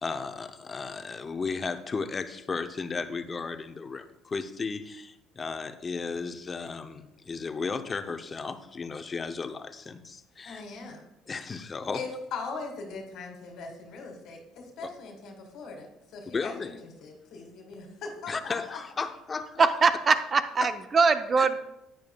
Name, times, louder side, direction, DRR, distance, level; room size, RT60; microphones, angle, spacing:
voice 1, 0.0-10.6 11.3-12.0 14.8-14.9 16.3-16.8 18.3-19.7 20.6-20.7 21.4-21.6, left 4 dB, 25° left, 10 dB, 0.6 m, -34 dB
voice 2, 10.4-11.0 11.9-18.8, left 4 dB, 65° left, 3 dB, 1.6 m, -40 dB
voice 3, 19.6-21.6, right 4 dB, 30° right, 11 dB, 0.6 m, -22 dB
10.5 x 9.0 x 2.3 m, 0.88 s
cardioid pair, 105°, 0 cm